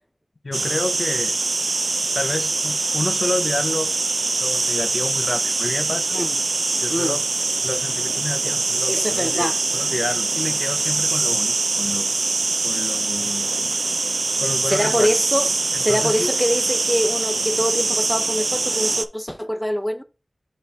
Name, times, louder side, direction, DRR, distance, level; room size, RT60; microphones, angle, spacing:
voice 1, 0.4-1.3 2.1-4.0 4.4-6.1 6.8-7.2 7.6-12.1 12.6-13.5 14.4-15.1 15.7-16.3, left 2 dB, 70° left, 0.6 m, -29 dB
sound 1, 0.5-19.1, right 3 dB, 80° right, 0.4 m, -23 dB
voice 2, 8.9-9.6 14.7-15.5 15.8-20.0, equal, 5° left, 0.6 m, -24 dB
5.4 x 4.2 x 4.3 m
wide cardioid pair, 45°, 0 cm